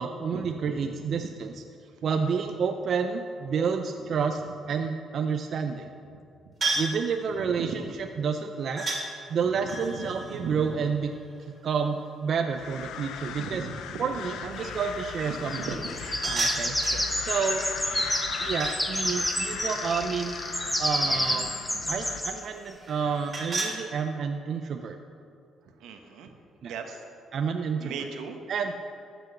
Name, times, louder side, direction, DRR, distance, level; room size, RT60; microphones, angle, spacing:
voice 1, 0.0-1.6 2.0-4.4 4.7-5.9 6.8-11.1 11.6-13.7 14.0-15.6 16.2-17.6 18.4-20.4 20.8-21.5 21.9-25.0 26.6-26.8 27.3-28.1 28.5-28.7, right 6 dB, 60° right, 5 dB, 0.6 m, -30 dB
sound 1, 6.6-7.0 8.8-9.0 9.6-11.5 16.0-17.0 17.9-18.8 19.1-21.0 22.8-23.8, right 3 dB, 35° right, 2.9 m, -33 dB
voice 2, 7.4-7.8 9.4-10.9 13.4-14.0 14.5-14.6 15.6-15.9 16.6-17.0 25.8-26.3 26.6-26.9 27.8-28.4, right 5 dB, 90° right, 5 dB, 1.2 m, -38 dB
sound 2, 12.5-22.2, left 8 dB, 85° left, 0.6 m, -38 dB
sound 3, 14.6-14.7 15.2-22.4 23.4-23.6, equal, 5° left, 1.5 m, -30 dB
14.0 x 6.2 x 6.7 m, 2.4 s
cardioid pair, 90°, 0 cm